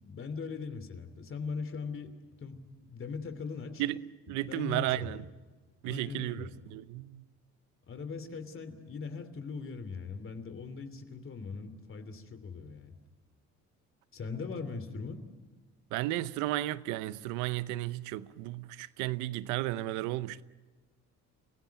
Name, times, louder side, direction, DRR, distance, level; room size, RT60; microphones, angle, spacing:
voice 1, 0.0-3.8 4.5-5.2 5.8-6.5 7.9-12.9 14.1-15.2, left 5 dB, 45° left, 3.0 m, -40 dB
voice 2, 4.3-5.2 5.8-7.2 15.9-20.4, right 16 dB, 85° right, 0.8 m, -33 dB
29.0 x 16.5 x 9.4 m
supercardioid pair, 75°, 29 cm